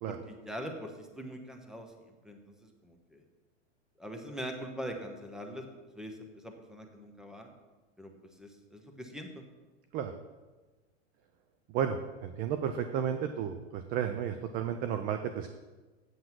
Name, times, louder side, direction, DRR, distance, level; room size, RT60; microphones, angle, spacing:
voice 1, 0.1-1.9 2.2-3.2 4.0-5.7 5.9-6.2 6.4-7.5 8.0-8.1 8.4-9.4, equal, ahead, 3 dB, 1.1 m, -42 dB
voice 2, 11.7-15.5, right 8 dB, 25° right, 8 dB, 0.4 m, -33 dB
7.8 x 7.5 x 6.0 m, 1.2 s
hypercardioid pair, 125°, 39 cm